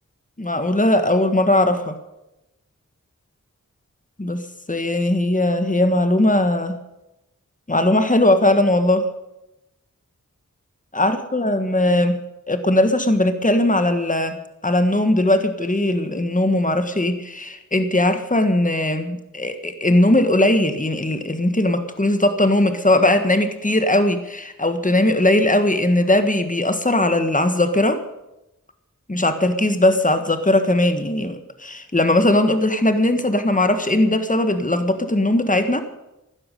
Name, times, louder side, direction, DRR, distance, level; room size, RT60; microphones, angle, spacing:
voice 1, 0.4-2.0 4.2-6.8 7.7-9.1 10.9-12.2 12.5-14.4 14.6-28.0 29.1-35.8, left 1 dB, 25° left, 8 dB, 1.5 m, -19 dB
16.0 x 12.0 x 6.7 m, 0.91 s
wide cardioid pair, 55°, 31 cm